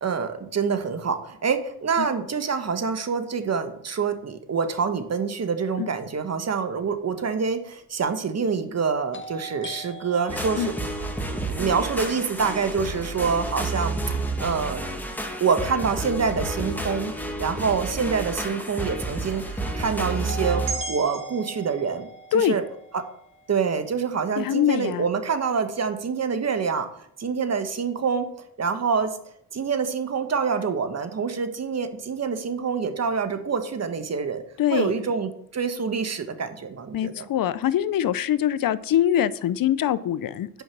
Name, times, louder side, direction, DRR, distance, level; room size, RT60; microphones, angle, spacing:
voice 1, 0.0-11.0 11.5-14.8 15.4-17.1 17.4-22.1 22.3-22.6 22.9-23.0 23.5-26.9 27.2-28.3 28.6-29.2 29.5-34.4 34.7-37.2, right 5 dB, 45° right, 9 dB, 1.4 m, -26 dB
sound 1, 7.2-7.3 9.1-13.0 20.3-24.3, right 2 dB, 30° left, 1.0 m, -41 dB
sound 2, 10.3-20.7, right 2 dB, 5° left, 1.7 m, -30 dB
sound 3, 20.7-25.2 25.6-25.7, right 5 dB, 90° right, 1.9 m, -40 dB
voice 2, 24.4-25.1 34.6-34.9 36.9-40.6, left 11 dB, 60° left, 16 dB, 0.7 m, -23 dB
9.2 x 5.3 x 6.1 m, 0.70 s
cardioid pair, 75°, 38 cm